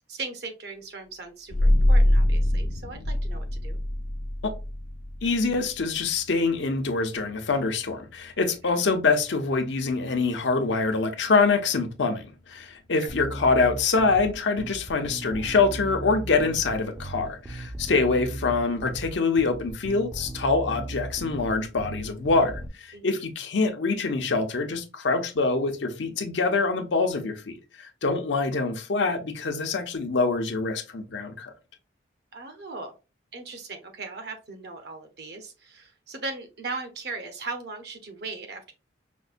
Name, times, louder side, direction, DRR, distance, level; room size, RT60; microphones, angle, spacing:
voice 1, 0.1-3.8 12.9-13.1 22.9-23.3 32.3-32.9 33.3-38.7, right 3 dB, 55° right, 0.8 m, -38 dB
sound 1, 1.5-12.8, left 1 dB, 40° left, 0.4 m, -27 dB
voice 2, 5.2-31.5, left 3 dB, 75° left, 0.7 m, -25 dB
Bass guitar, 13.1-22.7, right 1 dB, 20° right, 0.4 m, -37 dB
5.2 x 2.2 x 2.5 m
head